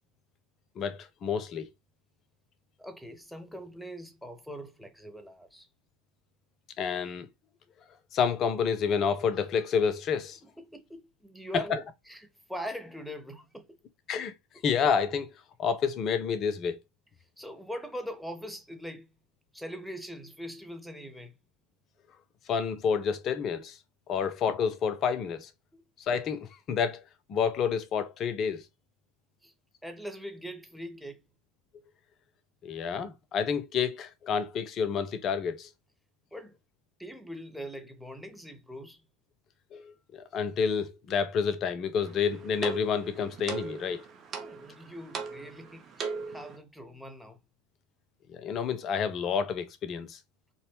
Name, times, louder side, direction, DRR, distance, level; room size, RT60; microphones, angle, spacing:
voice 1, 0.8-1.7 6.8-7.3 8.1-10.4 14.1-14.3 14.6-15.3 15.6-16.8 22.5-23.8 24.1-25.5 26.0-27.0 27.3-28.6 32.6-35.7 39.7-44.0 48.3-50.2, left 6 dB, 40° left, 0.5 m, -29 dB
voice 2, 2.8-5.7 10.6-13.8 17.4-19.1 19.5-21.3 25.7-25.8 29.4-29.5 29.8-31.2 36.3-36.6 37.0-39.0 44.4-47.4, equal, ahead, 0.6 m, -42 dB
sound 1, 42.0-46.6, right 5 dB, 40° right, 0.6 m, -39 dB
2.7 x 2.1 x 3.0 m
hypercardioid pair, 80°, 0 cm